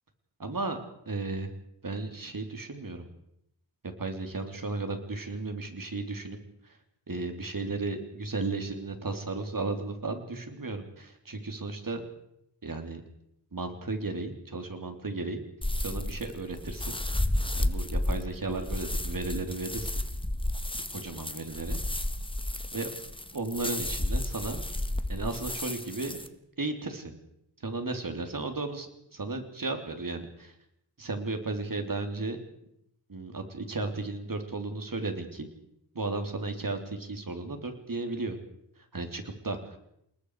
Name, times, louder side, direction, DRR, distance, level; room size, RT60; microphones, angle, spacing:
voice 1, 0.4-0.8 1.1-1.5 1.8-3.1 4.0-6.4 6.6-6.8 7.1-12.1 12.6-13.0 13.5-15.4 15.8-17.0 17.5-19.9 20.9-21.8 22.7-22.9 23.3-24.7 25.1-26.2 26.6-27.2 27.6-30.6 31.0-32.4 33.1-35.5 35.9-38.4 38.8-39.8, right 3 dB, 45° right, 6 dB, 3.6 m, -34 dB
sound 1, 15.6-26.3, left 1 dB, 10° left, 1.6 m, -32 dB
29.5 x 19.5 x 5.0 m, 0.76 s
wide cardioid pair, 70°, 45 cm